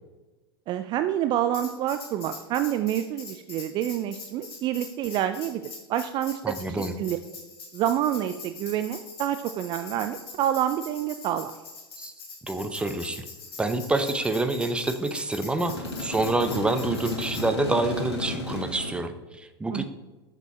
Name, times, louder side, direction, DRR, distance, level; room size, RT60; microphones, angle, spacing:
voice 1, 0.7-7.2 7.7-11.6 19.7-19.8, right 11 dB, 35° right, 10 dB, 0.4 m, -28 dB
Tambourine, 1.5-17.5, left 4 dB, 65° left, 2.8 m, -43 dB
voice 2, 6.4-6.9 12.0-12.1 12.4-13.2 13.6-19.8, right 2 dB, 5° right, 8 dB, 0.7 m, -27 dB
sound 1, 15.7-19.0, left 2 dB, 85° left, 1.5 m, -34 dB
6.9 x 6.8 x 4.2 m, 1.1 s
figure-of-eight pair, 90°, 14 cm